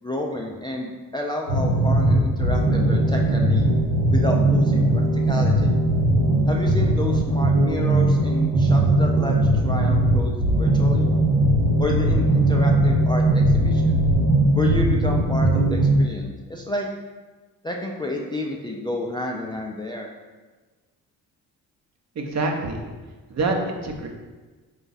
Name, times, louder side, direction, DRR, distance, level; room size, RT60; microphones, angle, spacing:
voice 1, 0.0-3.7 4.1-5.7 6.5-11.1 11.8-14.0 14.5-16.9 17.6-20.1, left 1 dB, 10° left, -1 dB, 0.4 m, -30 dB
sound 1, 1.5-15.9, right 1 dB, 85° right, 0.9 m, -19 dB
voice 2, 22.2-22.8 23.3-24.1, right 2 dB, 45° right, 2 dB, 0.8 m, -26 dB
3.8 x 2.4 x 4.0 m, 1.3 s
supercardioid pair, 55°, 40 cm